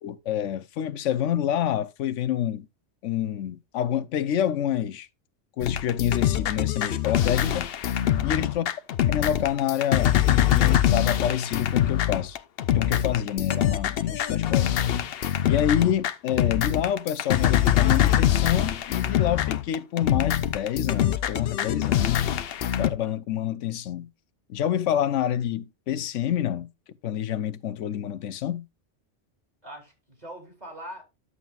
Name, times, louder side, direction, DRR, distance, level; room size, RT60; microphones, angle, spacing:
voice 1, 0.0-2.7 3.0-5.1 5.6-7.7 8.2-8.7 9.1-12.4 12.7-14.8 15.4-22.3 22.8-24.1 24.5-26.7 27.0-28.7, left 10 dB, 90° left, 1.0 m, -27 dB
sound 1, 5.6-22.9, left 11 dB, 60° left, 0.8 m, -24 dB
voice 2, 8.2-8.6 29.6-31.0, right 1 dB, 35° right, 3.9 m, -42 dB
11.0 x 7.5 x 2.4 m
omnidirectional pair, 1.2 m